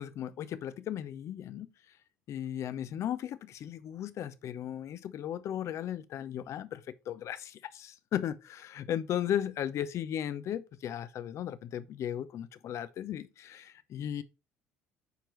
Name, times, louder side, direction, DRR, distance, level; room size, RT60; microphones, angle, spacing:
voice 1, 0.0-1.7 2.3-14.2, left 10 dB, 50° left, 0.6 m, -36 dB
9.1 x 4.5 x 3.1 m
hypercardioid pair, 60°, 6 cm